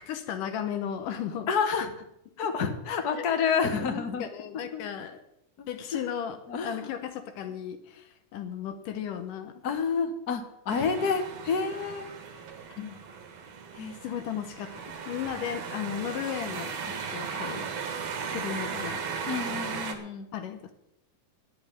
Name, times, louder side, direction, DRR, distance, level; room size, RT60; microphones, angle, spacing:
voice 1, 0.0-1.5 3.2-3.3 3.7-5.2 5.7-9.6 11.0-11.2 12.8-13.0 14.0-19.0 20.3-20.7, left 9 dB, 80° left, 9 dB, 2.6 m, -36 dB
voice 2, 1.5-1.9 2.4-4.2 4.7-4.8 5.6-5.7 5.9-6.0 6.5-6.9 9.6-12.1 13.8-14.0 19.3-20.3, left 5 dB, 55° left, 6 dB, 1.0 m, -29 dB
sound 1, 10.7-19.9, right 6 dB, 55° right, 2.5 m, -37 dB
10.5 x 8.7 x 9.0 m, 0.79 s
omnidirectional pair, 3.8 m